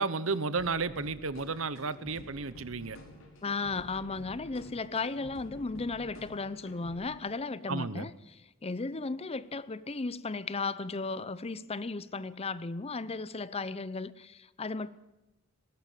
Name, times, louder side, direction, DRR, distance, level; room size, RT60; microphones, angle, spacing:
voice 1, 0.0-3.0 7.7-8.1, right 4 dB, 70° right, 1.0 m, -32 dB
sound 1, 0.6-7.0, equal, 80° left, 5.7 m, -50 dB
voice 2, 3.4-14.9, left 3 dB, 30° left, 0.7 m, -35 dB
20.0 x 17.5 x 7.4 m
head